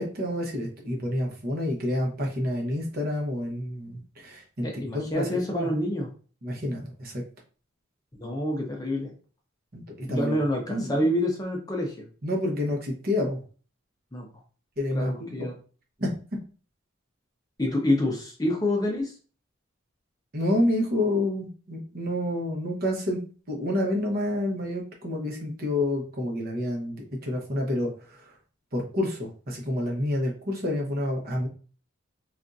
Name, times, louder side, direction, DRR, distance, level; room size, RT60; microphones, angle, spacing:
voice 1, 0.0-4.7 4.9-5.7 6.4-7.2 9.7-10.3 10.7-11.1 12.2-13.4 14.8-15.3 16.0-16.1 20.3-23.2 23.5-28.2 28.7-31.5, left 1 dB, 45° right, 0 dB, 1.0 m, -28 dB
voice 2, 4.6-6.1 8.2-9.1 10.1-12.1 14.1-14.3 14.9-15.5 17.6-19.1, left 1 dB, 20° left, 0 dB, 0.6 m, -27 dB
3.4 x 2.4 x 2.6 m, 0.39 s
head